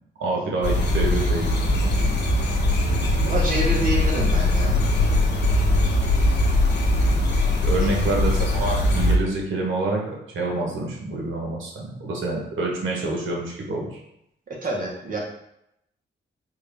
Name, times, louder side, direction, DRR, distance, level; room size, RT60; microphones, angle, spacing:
voice 1, 0.2-2.0 7.6-14.0, right 2 dB, 90° right, -1 dB, 1.0 m, -27 dB
sound 1, 0.6-9.2, left 1 dB, 60° left, 0.7 m, -21 dB
voice 2, 3.2-4.8 7.7-7.9 14.5-15.2, right 2 dB, 45° right, -3 dB, 1.0 m, -27 dB
3.8 x 2.5 x 3.3 m, 0.80 s
wide cardioid pair, 140°, 20 cm